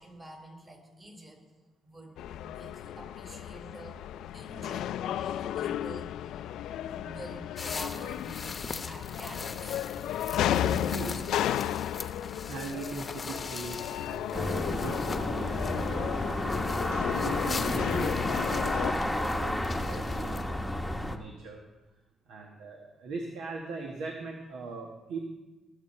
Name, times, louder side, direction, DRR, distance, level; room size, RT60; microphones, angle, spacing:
voice 1, 0.0-1.4 1.8-4.0 4.3-6.1 6.8-8.4 8.9-9.8, right 1 dB, 30° right, 1 dB, 4.2 m, -47 dB
sound 1, 2.2-18.9, left 11 dB, 85° left, 0.3 m, -33 dB
sound 2, 7.6-20.4, left 4 dB, 35° left, 0.8 m, -42 dB
voice 2, 10.4-11.3 12.5-16.1 16.4-16.5 17.1-21.6 22.3-25.2, right 3 dB, 85° right, 1 dB, 1.4 m, -40 dB
sound 3, 14.3-21.2, left 1 dB, ahead, 1.1 m, -31 dB
19.5 x 7.4 x 4.3 m, 1.1 s
cardioid pair, 90°, 0 cm